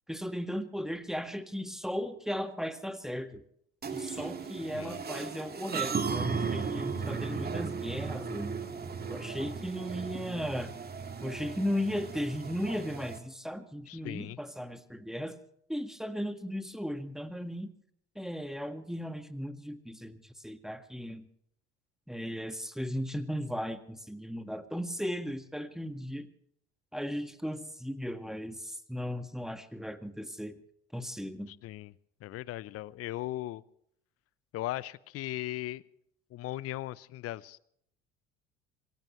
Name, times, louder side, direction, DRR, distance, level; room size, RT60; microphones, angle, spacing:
voice 1, 0.1-3.4 3.9-8.5 9.0-10.7 11.2-15.4 15.7-17.7 18.2-21.2 22.1-26.3 26.9-30.6 30.9-31.5, equal, ahead, 9 dB, 1.7 m, -36 dB
sound 1, 3.8-13.2, right 5 dB, 30° right, 2.2 m, -36 dB
voice 2, 13.9-14.4 31.5-31.9 32.2-33.6 34.5-35.8 36.3-37.6, left 15 dB, 45° left, 20 dB, 0.7 m, -38 dB
26.5 x 17.0 x 3.2 m, 0.70 s
hypercardioid pair, 60°, 33 cm